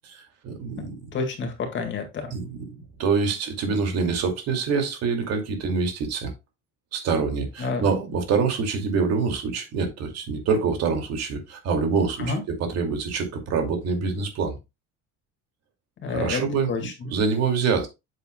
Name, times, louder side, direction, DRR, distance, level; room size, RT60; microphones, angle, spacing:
voice 1, 0.0-1.1 2.3-6.3 6.9-14.6 16.1-17.9, right 5 dB, 55° right, 2.4 m, -26 dB
voice 2, 1.1-2.3 7.6-7.8 12.2-12.4 16.0-16.4 16.7-16.9, left 4 dB, 35° left, 2.0 m, -28 dB
8.3 x 7.5 x 2.3 m
cardioid pair, 170°, 32 cm